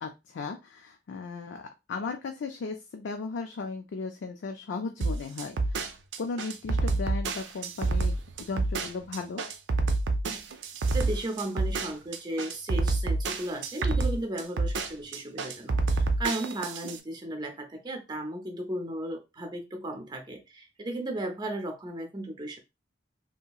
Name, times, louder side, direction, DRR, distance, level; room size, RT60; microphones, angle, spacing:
voice 1, 0.0-5.8 6.2-9.4, left 4 dB, 90° left, 4 dB, 0.4 m, -36 dB
sound 1, 5.0-17.0, right 3 dB, 90° right, 0.4 m, -28 dB
voice 2, 10.9-22.6, right 1 dB, 25° right, 4 dB, 0.6 m, -35 dB
2.8 x 2.7 x 2.3 m, 0.24 s
head